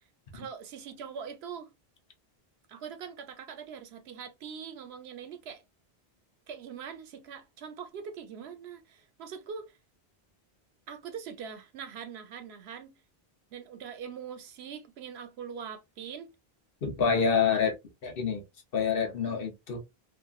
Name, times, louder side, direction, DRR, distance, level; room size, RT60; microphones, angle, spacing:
voice 1, 0.3-1.7 2.7-5.6 6.5-9.7 10.9-13.0 13.5-16.3 17.5-17.6 19.2-19.5, right 7 dB, 85° right, 0.9 m, -42 dB
voice 2, 16.8-17.7 18.0-18.4 18.7-19.8, left 6 dB, 65° left, 1.0 m, -27 dB
3.0 x 2.4 x 2.3 m
omnidirectional pair, 1.0 m